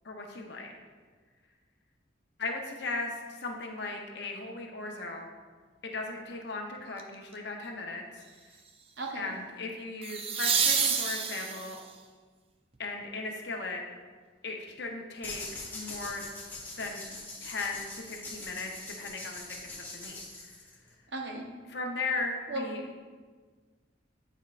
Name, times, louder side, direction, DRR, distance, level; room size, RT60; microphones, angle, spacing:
voice 1, 0.0-0.7 2.4-5.3 5.8-8.2 9.1-11.8 12.8-13.8 14.4-15.5 15.7-16.3 16.7-17.0 17.4-18.7 19.0-19.4 19.8-20.5 21.7-22.8, left 3 dB, 60° left, 2 dB, 0.8 m, -37 dB
sound 1, 7.0-7.3 10.0-11.9 14.8-14.9, right 6 dB, 30° right, 0.4 m, -28 dB
voice 2, 9.0-9.4 21.1-21.5 22.5-22.7, right 2 dB, 65° right, 1 dB, 0.9 m, -36 dB
sound 2, 15.2-20.9, left 2 dB, 10° left, 1.2 m, -43 dB
9.6 x 4.5 x 2.5 m, 1.5 s
head